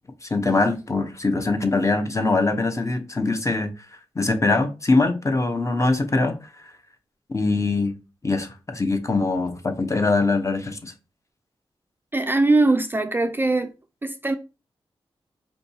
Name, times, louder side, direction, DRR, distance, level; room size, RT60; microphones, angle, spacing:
voice 1, 0.2-3.7 4.1-6.4 7.3-7.9 8.2-10.9, left 3 dB, 30° left, 0.7 m, -22 dB
voice 2, 12.1-13.7 14.0-14.4, right 2 dB, 20° right, 0.3 m, -21 dB
4.5 x 2.6 x 2.7 m
cardioid pair, 55°, 10 cm